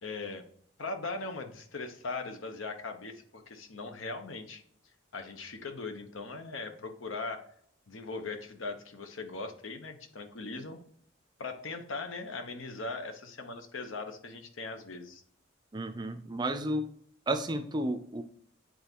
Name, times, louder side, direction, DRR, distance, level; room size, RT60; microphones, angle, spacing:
voice 1, 0.0-0.4 0.8-4.6 5.1-7.4 7.9-10.8 11.4-15.2, left 3 dB, 75° left, 7 dB, 0.9 m, -39 dB
voice 2, 15.7-16.9 17.3-18.2, right 1 dB, 20° right, 8 dB, 0.5 m, -32 dB
8.6 x 4.0 x 2.9 m, 0.63 s
head